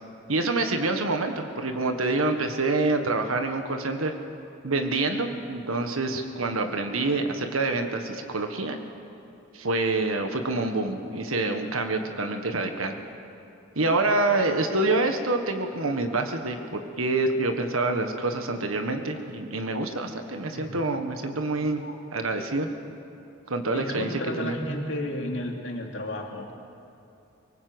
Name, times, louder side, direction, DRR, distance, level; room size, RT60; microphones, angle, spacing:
voice 1, 0.3-4.1 4.6-8.8 9.5-13.0 13.7-21.8 22.1-22.7 23.5-24.5, right 2 dB, 90° right, 5 dB, 1.5 m, -26 dB
voice 2, 23.7-26.5, left 1 dB, 60° left, 0 dB, 2.7 m, -32 dB
24.0 x 19.5 x 8.0 m, 2.6 s
head